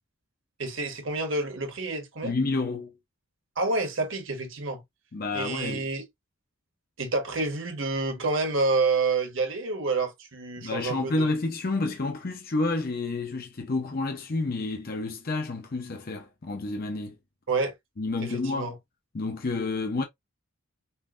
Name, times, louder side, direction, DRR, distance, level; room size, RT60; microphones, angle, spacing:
voice 1, 0.6-2.3 3.6-4.8 5.3-6.0 7.0-11.3 17.5-17.7 18.2-18.7, right 3 dB, 65° right, 1.3 m, -28 dB
voice 2, 2.2-2.9 5.1-5.8 10.6-17.2 18.0-18.7 19.1-20.0, left 3 dB, 45° left, 0.6 m, -29 dB
5.5 x 2.6 x 2.5 m
head